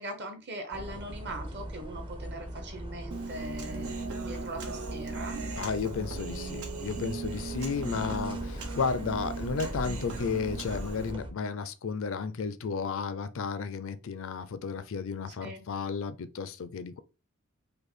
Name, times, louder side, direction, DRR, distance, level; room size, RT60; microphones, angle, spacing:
voice 1, 0.0-3.9 4.2-5.5 15.4-15.6, right 1 dB, 50° right, 1.2 m, -41 dB
sound 1, 0.7-11.3, equal, 25° right, 0.6 m, -40 dB
Human voice, 3.1-11.1, right 4 dB, 85° right, 1.1 m, -39 dB
voice 2, 5.6-17.0, left 5 dB, 65° left, 0.5 m, -33 dB
5.3 x 2.2 x 4.1 m
head